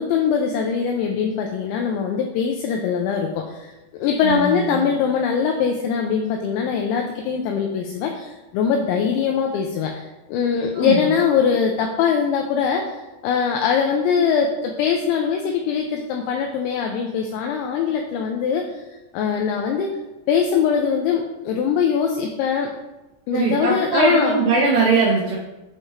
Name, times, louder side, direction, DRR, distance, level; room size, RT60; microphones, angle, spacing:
voice 1, 0.0-18.8 19.1-20.0 20.3-22.7 23.3-24.4, left 6 dB, 85° left, 2 dB, 2.6 m, -22 dB
voice 2, 4.2-4.8 10.7-11.2 23.3-25.4, right 3 dB, 75° right, -5 dB, 2.6 m, -20 dB
9.8 x 3.3 x 3.1 m, 1.0 s
omnidirectional pair, 5.7 m